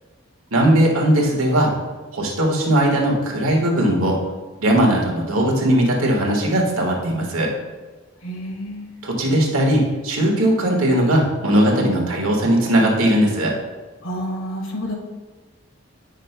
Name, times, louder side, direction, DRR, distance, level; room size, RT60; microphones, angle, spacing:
voice 1, 0.5-1.7 2.1-4.2 4.6-7.5 9.0-13.5, right 1 dB, 85° right, -1 dB, 1.5 m, -18 dB
voice 2, 8.2-8.9 14.0-14.9, equal, 75° left, 0 dB, 1.5 m, -29 dB
9.2 x 6.4 x 2.2 m, 1.3 s
head